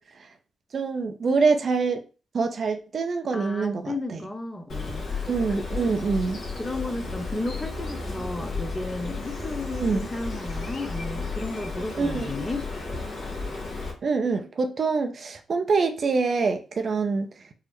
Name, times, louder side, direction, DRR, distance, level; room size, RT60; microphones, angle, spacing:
voice 1, 0.7-2.0 2.3-4.2 5.3-6.4 9.8-10.1 11.9-12.3 14.0-17.3, right 4 dB, 55° right, 0.5 m, -25 dB
voice 2, 3.3-5.3 5.6-5.7 6.2-12.6, left 2 dB, 25° left, 0.7 m, -33 dB
Bird, 4.7-13.9, left 3 dB, 60° left, 1.1 m, -33 dB
4.7 x 2.0 x 3.0 m
hypercardioid pair, 40°, 0 cm